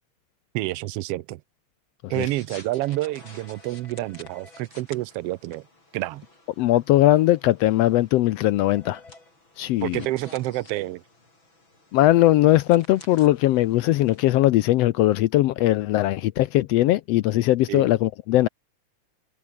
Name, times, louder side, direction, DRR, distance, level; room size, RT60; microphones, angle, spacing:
voice 1, 0.5-1.4 2.1-5.7 5.9-6.3 9.8-11.0 17.7-17.8, right 17 dB, 75° right, 1.4 m, -28 dB
sound 1, 2.1-14.2, left 2 dB, 40° left, 9.0 m, -50 dB
voice 2, 6.6-9.0 9.6-10.0 11.9-18.5, left 15 dB, 75° left, 1.5 m, -20 dB
omnidirectional pair, 3.3 m